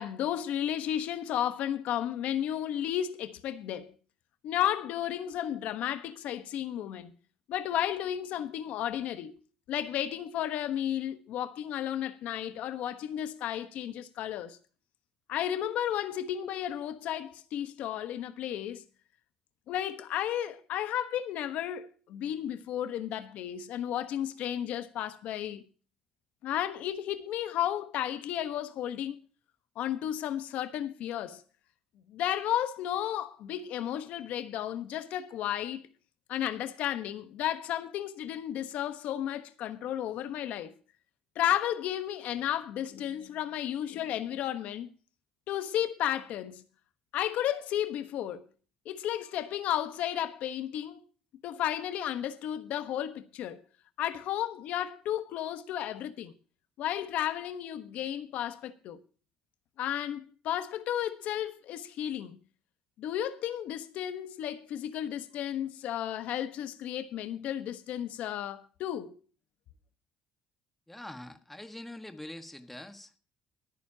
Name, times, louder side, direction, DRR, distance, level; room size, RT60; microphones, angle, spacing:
voice 1, 0.0-3.9 4.4-7.1 7.5-9.3 9.7-14.6 15.3-18.8 19.7-25.6 26.4-29.2 29.8-31.4 32.1-35.8 36.3-40.7 41.3-44.9 45.5-46.6 47.1-48.4 48.8-51.0 51.4-53.6 54.0-56.3 56.8-59.0 59.8-62.4 63.0-69.1, left 11 dB, 70° left, 1.2 m, -33 dB
voice 2, 70.9-73.1, left 1 dB, 5° left, 1.5 m, -44 dB
23.5 x 9.6 x 2.9 m
cardioid pair, 130°, 3 cm